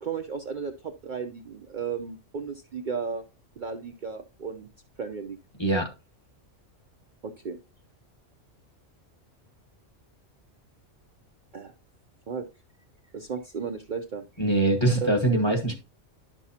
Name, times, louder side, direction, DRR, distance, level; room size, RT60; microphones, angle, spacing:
voice 1, 0.0-3.2 3.6-4.7 5.0-5.4 7.2-7.6 11.5-11.7 12.3-12.4 13.1-14.2 15.0-15.1 15.4-15.5, right 6 dB, 50° right, 0.7 m, -34 dB
voice 2, 14.4-15.8, right 2 dB, 25° left, 1.1 m, -23 dB
10.5 x 6.1 x 2.8 m
omnidirectional pair, 1.3 m